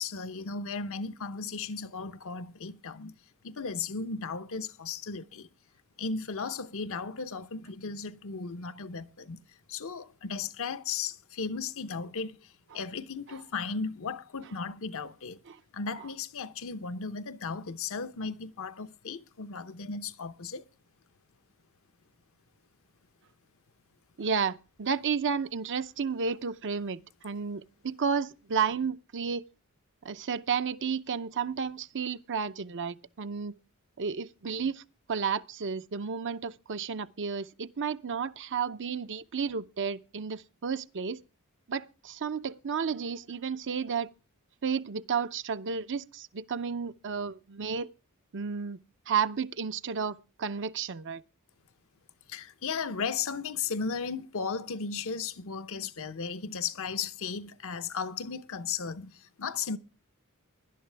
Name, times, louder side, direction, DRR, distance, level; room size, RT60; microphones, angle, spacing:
voice 1, 0.0-3.1 3.4-5.5 6.0-9.4 9.7-15.4 15.7-20.6 52.3-59.8, left 5 dB, 65° left, 0.8 m, -35 dB
voice 2, 24.2-29.4 30.0-33.6 34.0-34.8 35.1-41.2 41.7-44.1 44.6-47.9 48.3-48.8 49.1-51.2, right 6 dB, 55° right, 0.7 m, -32 dB
18.0 x 11.5 x 3.4 m
head